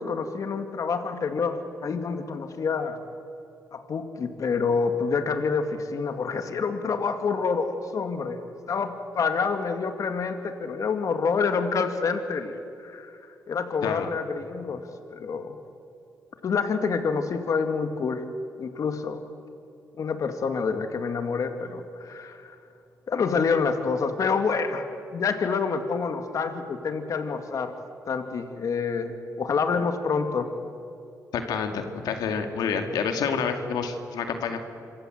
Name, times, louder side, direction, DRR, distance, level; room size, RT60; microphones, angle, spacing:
voice 1, 0.0-3.0 3.7-13.1 13.5-14.8 15.1-15.6 16.4-18.2 18.6-19.2 20.0-22.6 23.1-24.9 25.1-27.7 28.1-30.5, left 5 dB, 60° left, 7 dB, 2.2 m, -27 dB
voice 2, 31.3-34.6, left 6 dB, 90° left, 5 dB, 2.3 m, -28 dB
27.0 x 24.5 x 7.9 m, 2.6 s
cardioid pair, 80°, 6 cm